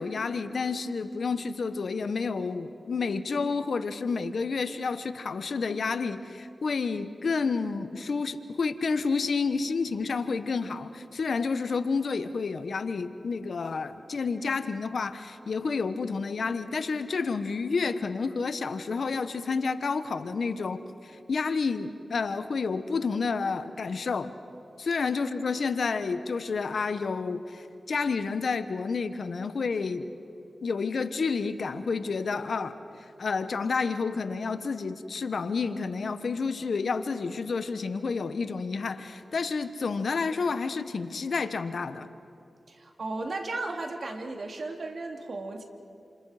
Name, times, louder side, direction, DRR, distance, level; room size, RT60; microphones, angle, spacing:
voice 1, 0.0-24.3 24.8-30.1 30.6-32.7 33.2-42.1, left 4 dB, 75° left, 11 dB, 1.1 m, -30 dB
voice 2, 42.7-45.6, right 2 dB, 70° right, 3 dB, 2.6 m, -35 dB
29.5 x 27.5 x 5.0 m, 2.6 s
cardioid pair, 45°, 0 cm